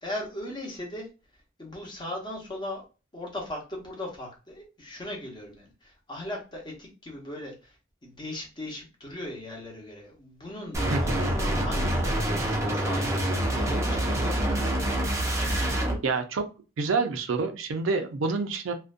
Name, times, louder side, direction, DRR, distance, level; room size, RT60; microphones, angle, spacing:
voice 1, 0.0-1.1 1.6-2.8 3.1-14.7, left 1 dB, 25° left, -1 dB, 0.8 m, -38 dB
sound 1, 10.7-15.9, right 1 dB, 15° right, 0.4 m, -26 dB
voice 2, 16.0-16.5 16.8-18.7, right 4 dB, 75° right, 7 dB, 0.4 m, -27 dB
2.5 x 2.1 x 2.4 m, 0.32 s
head